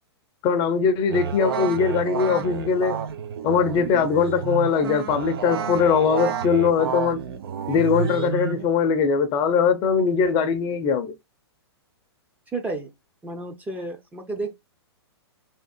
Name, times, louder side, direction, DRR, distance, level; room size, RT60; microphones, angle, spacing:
voice 1, 0.4-3.0 3.4-7.2 7.7-11.1, left 6 dB, 30° left, 0.7 m, -21 dB
sound 1, 1.1-8.7, right 7 dB, 60° right, 0.8 m, -30 dB
voice 2, 12.5-12.9 13.2-14.6, right 2 dB, 10° right, 0.7 m, -31 dB
3.7 x 2.7 x 4.3 m
hypercardioid pair, 120°, 14 cm